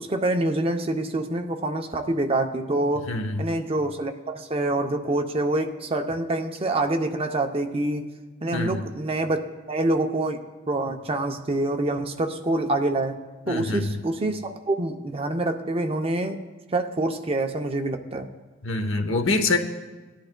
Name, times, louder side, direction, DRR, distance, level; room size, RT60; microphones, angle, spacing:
voice 1, 0.0-3.1 3.4-8.1 8.4-10.4 10.7-13.2 13.5-16.4 16.7-18.3, right 2 dB, 30° right, 5 dB, 0.6 m, -26 dB
voice 2, 3.1-3.4 8.5-8.8 13.5-13.8 18.6-19.6, left 2 dB, 90° left, 6 dB, 0.9 m, -25 dB
18.0 x 10.5 x 2.2 m, 1.3 s
head